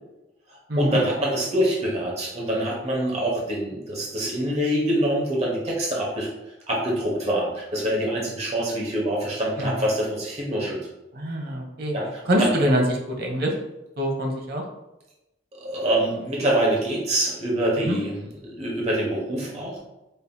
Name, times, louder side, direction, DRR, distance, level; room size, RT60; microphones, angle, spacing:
voice 1, 0.5-6.3 6.7-10.8 11.9-12.5 15.5-18.1 18.4-19.8, right 1 dB, 35° right, -3 dB, 1.0 m, -25 dB
voice 2, 11.1-12.0 12.3-13.5 14.0-14.6 17.8-18.0, equal, 60° right, 1 dB, 0.8 m, -24 dB
5.4 x 2.8 x 2.2 m, 0.95 s
head